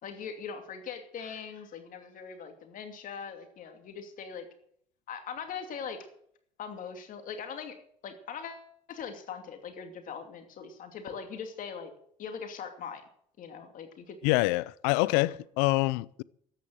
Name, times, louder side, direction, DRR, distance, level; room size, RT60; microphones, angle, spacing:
voice 1, 0.0-4.5 5.1-6.1 6.6-7.8 8.0-11.9 12.2-13.0 13.4-14.2, left 6 dB, 60° left, 2.7 m, -41 dB
voice 2, 14.2-16.2, left 21 dB, 85° left, 0.5 m, -26 dB
13.0 x 10.0 x 7.8 m
supercardioid pair, 70°, 16 cm